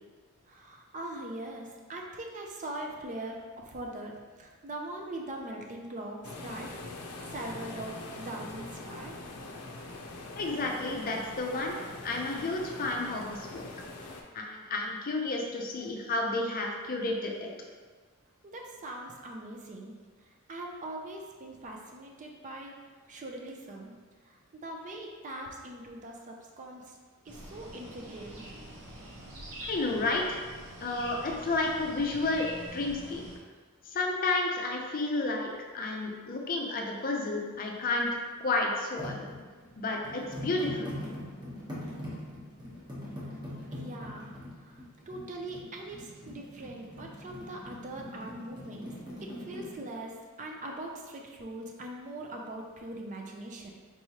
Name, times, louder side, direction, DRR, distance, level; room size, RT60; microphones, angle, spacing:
voice 1, 0.5-3.4 3.7-7.0 7.3-9.2 18.4-19.9 20.2-22.7 23.1-23.9 24.2-27.0 27.3-28.6 43.7-48.9 49.2-53.7, right 1 dB, 35° right, 1 dB, 0.4 m, -41 dB
sound 1, 6.2-14.2, left 2 dB, 85° left, 0.5 m, -43 dB
voice 2, 10.4-11.7 12.0-13.7 14.3-17.5 29.6-30.4 30.8-33.2 33.9-35.5 35.7-38.1 38.4-39.2 39.8-40.9, left 2 dB, 40° left, 0 dB, 0.5 m, -31 dB
sound 2, 27.2-33.4, right 1 dB, 80° right, 1.1 m, -45 dB
sound 3, 39.0-49.8, left 1 dB, 20° right, 0.9 m, -42 dB
4.6 x 3.0 x 2.8 m, 1.4 s
head